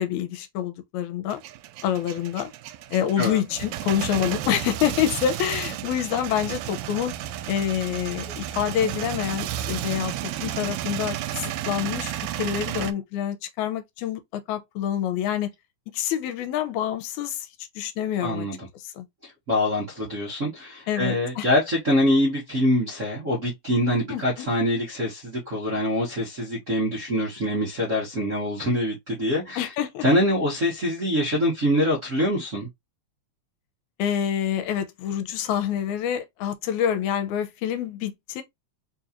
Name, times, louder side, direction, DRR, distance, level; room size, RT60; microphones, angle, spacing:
voice 1, 0.0-1.4 1.8-2.5 2.9-7.1 7.5-10.1 10.4-15.5 15.9-17.5 17.8-18.5 19.0-19.1 20.9-21.5 24.1-24.5 29.6-30.1 34.0-38.4, left 10 dB, 80° left, 2.0 m, -27 dB
Male speech man speaking / Vehicle / Engine starting, 1.3-12.9, right 12 dB, 85° right, 1.9 m, -32 dB
voice 2, 18.2-18.6 19.2-29.7 30.0-32.7, equal, 60° right, 0.8 m, -24 dB
4.5 x 2.9 x 2.4 m
omnidirectional pair, 3.4 m